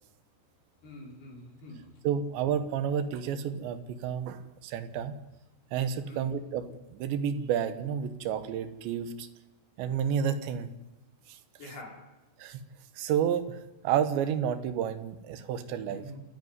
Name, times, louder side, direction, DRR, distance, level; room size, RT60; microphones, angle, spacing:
voice 1, 0.8-2.0 6.1-6.3 11.6-12.1 15.9-16.2, left 1 dB, 65° left, 0 dB, 6.5 m, -46 dB
voice 2, 2.0-5.2 5.7-9.3 9.8-10.7 11.3-11.4 12.4-12.6 13.0-16.0, right 8 dB, 90° right, 11 dB, 3.6 m, -30 dB
28.0 x 11.0 x 9.6 m, 0.99 s
omnidirectional pair, 5.0 m